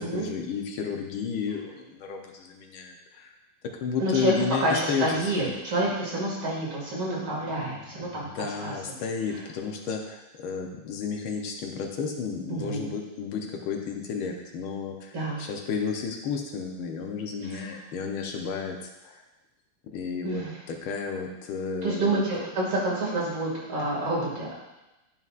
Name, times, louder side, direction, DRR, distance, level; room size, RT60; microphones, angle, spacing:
voice 1, 0.0-3.3 3.6-5.5 7.6-7.8 8.1-18.8 19.0-19.2 19.9-22.3, left 6 dB, 85° left, 2 dB, 1.7 m, -32 dB
voice 2, 4.0-4.3 4.6-8.3 8.6-8.7 12.5-12.9 15.1-15.4 20.2-20.6 21.8-24.6, right 2 dB, 80° right, -5 dB, 3.0 m, -28 dB
10.5 x 5.7 x 2.5 m, 1.0 s
omnidirectional pair, 2.2 m